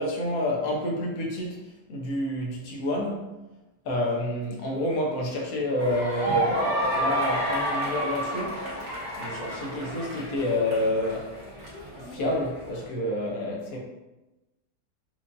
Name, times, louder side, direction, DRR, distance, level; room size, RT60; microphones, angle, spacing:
voice 1, 0.0-1.6 1.9-3.4 3.8-8.7 9.2-11.3 12.0-13.8, left 1 dB, 70° left, -1 dB, 1.0 m, -29 dB
sound 1, 5.8-12.8, right 1 dB, 75° right, 1.6 m, -30 dB
4.4 x 2.5 x 2.5 m, 1.0 s
omnidirectional pair, 1.7 m